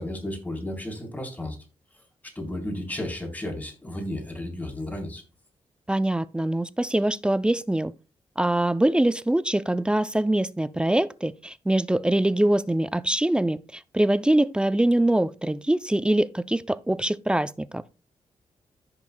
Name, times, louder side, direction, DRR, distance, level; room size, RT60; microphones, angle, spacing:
voice 1, 0.0-1.6 2.4-5.2, left 1 dB, 15° left, 3.5 m, -33 dB
voice 2, 5.9-7.9 8.4-17.8, right 1 dB, 10° right, 0.4 m, -23 dB
14.5 x 5.8 x 2.2 m
cardioid pair, 85°, 11 cm